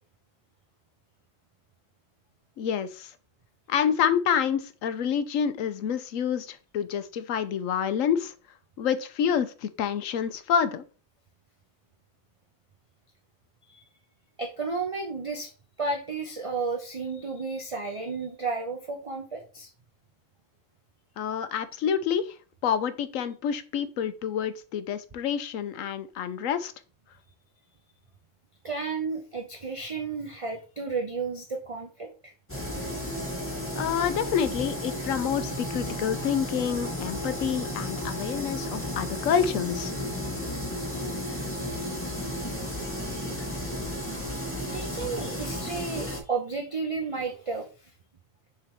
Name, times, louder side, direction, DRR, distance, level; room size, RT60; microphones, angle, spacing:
voice 1, 2.6-3.1 3.7-8.3 8.8-10.8 21.2-22.3 22.6-26.7 33.7-39.9, left 8 dB, 80° left, 12 dB, 1.1 m, -28 dB
voice 2, 14.4-15.5 15.8-19.7 28.6-32.3 43.0-43.3 44.7-47.7, right 4 dB, 30° right, 3 dB, 0.8 m, -32 dB
sound 1, 32.5-46.2, equal, 10° left, 1.5 m, -33 dB
6.8 x 3.9 x 4.5 m, 0.35 s
omnidirectional pair, 1.4 m